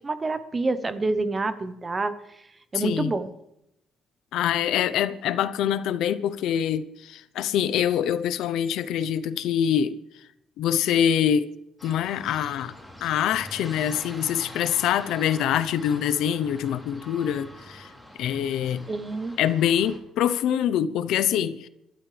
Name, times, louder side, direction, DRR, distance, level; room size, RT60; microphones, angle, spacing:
voice 1, 0.0-2.1 2.7-3.3 18.9-19.4, right 3 dB, 20° right, 1.0 m, -27 dB
voice 2, 2.7-3.2 4.3-10.0 10.6-11.5 11.8-12.7 13.0-17.9 18.2-18.8 19.4-21.7, left 9 dB, 85° left, 0.7 m, -25 dB
sound 1, 11.8-20.0, left 1 dB, ahead, 3.4 m, -44 dB
28.5 x 12.5 x 3.4 m
cardioid pair, 140°, 0 cm